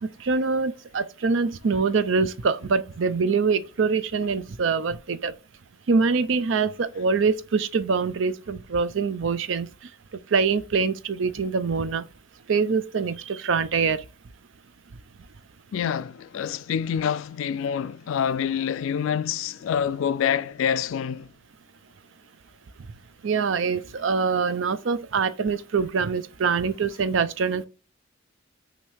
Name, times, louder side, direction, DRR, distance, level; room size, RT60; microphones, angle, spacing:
voice 1, 0.0-5.3 5.9-9.7 10.3-12.0 12.5-14.0 23.2-27.7, right 5 dB, 65° right, 0.5 m, -24 dB
voice 2, 15.7-21.3, left 8 dB, 75° left, 0.3 m, -26 dB
5.7 x 2.7 x 3.3 m
head